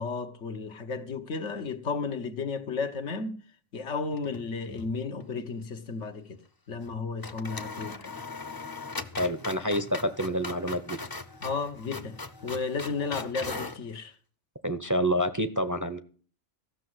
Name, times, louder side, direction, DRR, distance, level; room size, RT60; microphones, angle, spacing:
voice 1, 0.0-3.4 3.7-6.4 6.7-8.1 11.4-12.1 12.4-14.1, left 4 dB, 80° left, 1.5 m, -33 dB
sound 1, 4.1-4.9 5.2-5.3 6.8-6.9 7.2-13.8, left 3 dB, 25° left, 0.6 m, -39 dB
voice 2, 9.2-11.0 14.6-16.0, equal, 20° right, 0.6 m, -28 dB
14.5 x 6.3 x 7.9 m
omnidirectional pair, 1.2 m